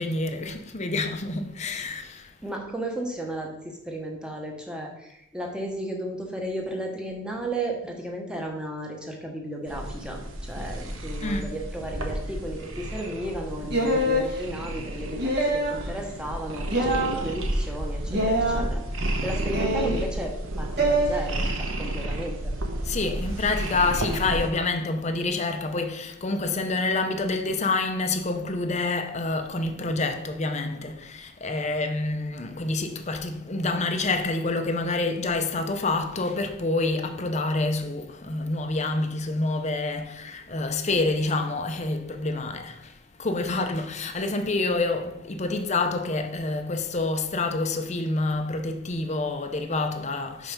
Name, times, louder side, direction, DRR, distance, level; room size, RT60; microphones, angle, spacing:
voice 1, 0.0-2.3 11.2-11.6 22.8-50.5, left 3 dB, 35° left, 0.7 m, -27 dB
voice 2, 2.4-18.8 19.2-22.5, right 1 dB, 5° right, 1.0 m, -34 dB
sound 1, 9.7-24.5, right 1 dB, 75° right, 1.1 m, -32 dB
sound 2, 13.7-14.3 15.2-15.8 16.7-17.2 18.1-18.6 19.5-20.0 20.8-21.1, right 1 dB, 55° right, 1.6 m, -24 dB
5.5 x 4.9 x 5.8 m
head